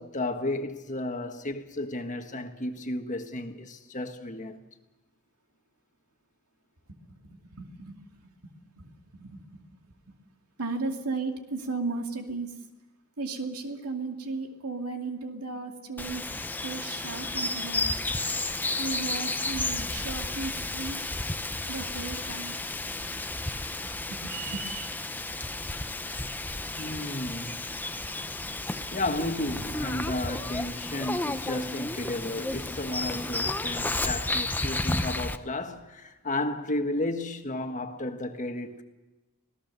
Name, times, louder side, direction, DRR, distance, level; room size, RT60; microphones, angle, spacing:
voice 1, 0.0-4.6 26.8-27.7 28.9-38.8, left 1 dB, 35° left, 1.5 m, -33 dB
voice 2, 6.9-10.2 10.6-12.5 13.2-16.2 16.6-17.9 18.8-21.0 21.7-22.6 24.1-24.6, right 3 dB, 85° right, 2.5 m, -36 dB
Bird vocalization bird call bird song, 16.0-35.4, left 2 dB, 10° left, 0.7 m, -32 dB
sound 1, 24.2-24.9, right 5 dB, 35° right, 2.8 m, -39 dB
25.5 x 17.5 x 6.8 m
head